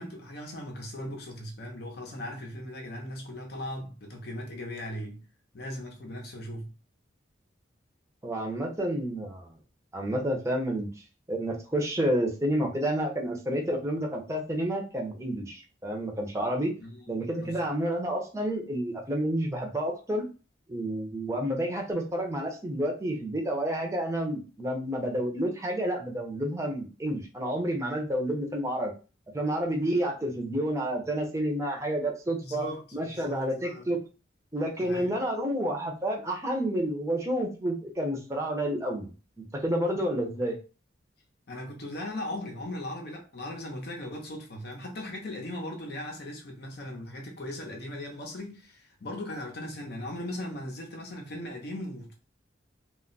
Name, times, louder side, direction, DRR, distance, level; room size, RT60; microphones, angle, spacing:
voice 1, 0.0-5.3 5.5-6.7 16.8-17.1 17.4-17.6 32.4-33.9 34.8-35.1 41.5-52.1, left 1 dB, 55° left, 0.6 m, -38 dB
voice 2, 8.2-9.5 9.9-10.9 11.3-16.7 17.1-20.2 20.7-28.9 29.3-32.7 32.9-34.0 34.5-39.1 39.4-40.6, right 1 dB, 15° right, 0.6 m, -30 dB
2.2 x 2.1 x 3.8 m
head